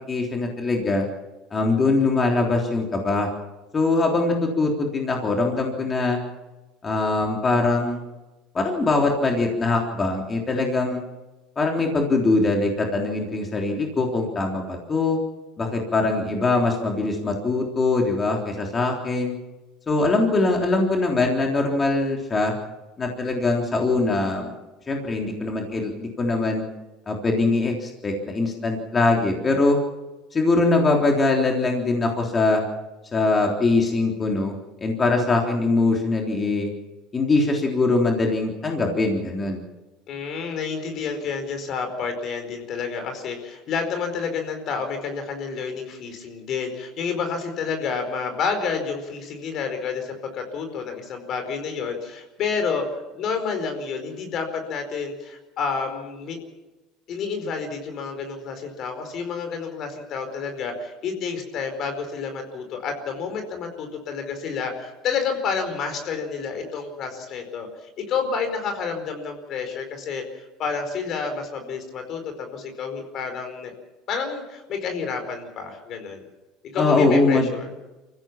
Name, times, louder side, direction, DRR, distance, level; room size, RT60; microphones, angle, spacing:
voice 1, 0.1-1.1 1.5-3.3 3.7-6.2 6.8-8.0 8.5-11.0 11.6-15.2 15.6-19.4 19.9-22.5 23.0-24.5 24.9-26.6 27.1-29.8 30.3-32.6 33.1-34.5 34.8-36.7 37.1-39.6 76.8-77.5, left 3 dB, 30° left, 1 dB, 3.6 m, -22 dB
voice 2, 40.1-56.4 57.1-67.7 68.0-73.7 74.1-76.2 76.7-77.7, left 5 dB, 50° left, 6 dB, 4.7 m, -29 dB
24.5 x 15.5 x 7.3 m, 1.1 s
hypercardioid pair, 85°, 0 cm